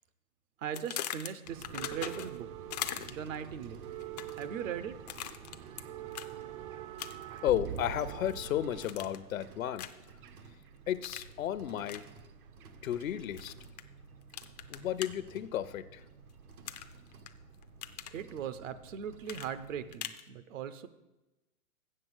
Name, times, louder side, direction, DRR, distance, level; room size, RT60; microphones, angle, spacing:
voice 1, 0.6-2.5 3.1-3.8 4.3-5.0 18.1-20.9, right 8 dB, 60° right, 12 dB, 0.9 m, -39 dB
sound 1, 0.7-2.4 2.7-3.4 4.0-4.5 5.1-5.8 6.1-6.3 7.0-7.4 7.8-8.4 8.8-9.3 9.8-10.1 11.0-11.3 11.9-12.0 13.4-13.8 14.3-15.1 16.7-17.3 17.6-18.2 19.3-20.2, left 12 dB, 30° left, 0.4 m, -40 dB
sound 2, 1.4-10.9 11.8-12.9 13.2-13.4 14.3-14.4, right 11 dB, 40° right, 0.6 m, -45 dB
sound 3, 1.6-19.9, right 4 dB, 80° right, 1.4 m, -54 dB
voice 2, 7.4-9.9 10.9-12.0 12.8-13.5 14.7-16.0, left 11 dB, 70° left, 14 dB, 0.7 m, -33 dB
7.7 x 7.2 x 8.0 m, 1.0 s
hypercardioid pair, 125°, 43 cm